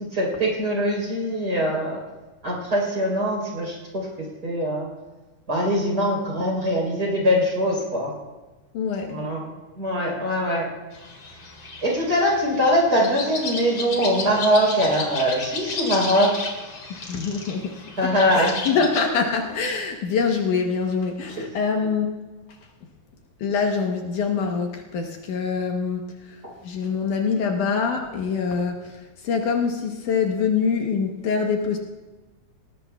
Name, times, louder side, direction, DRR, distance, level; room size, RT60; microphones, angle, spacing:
voice 1, 0.1-2.0 2.4-4.1 4.4-4.9 5.5-8.1 9.1-10.7 11.8-16.5 18.0-18.5, equal, 30° right, -3 dB, 4.0 m, -22 dB
voice 2, 8.7-9.3 16.9-22.2 23.4-31.8, left 5 dB, 70° left, 2 dB, 2.4 m, -25 dB
sound 1, 10.9-19.0, left 3 dB, 45° left, 2.7 m, -34 dB
19.5 x 19.0 x 2.3 m, 1.2 s
omnidirectional pair, 3.9 m